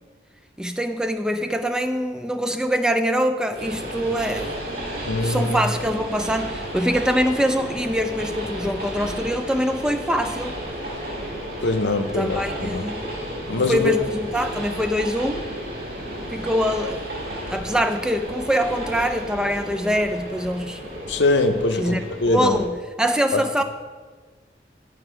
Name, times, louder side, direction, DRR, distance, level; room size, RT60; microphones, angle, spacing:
voice 1, 0.6-4.6 5.2-10.5 12.2-13.1 13.7-15.5 16.3-17.1 17.5-20.9 21.8-22.7 23.0-23.6, equal, 5° right, 6 dB, 0.3 m, -24 dB
Train, 3.5-22.7, equal, 55° right, 1.9 m, -33 dB
voice 2, 5.1-5.6 11.6-12.8 13.5-14.0 21.1-22.6 23.3-23.6, left 2 dB, 85° left, 8 dB, 0.7 m, -23 dB
9.9 x 4.9 x 4.8 m, 1.5 s
head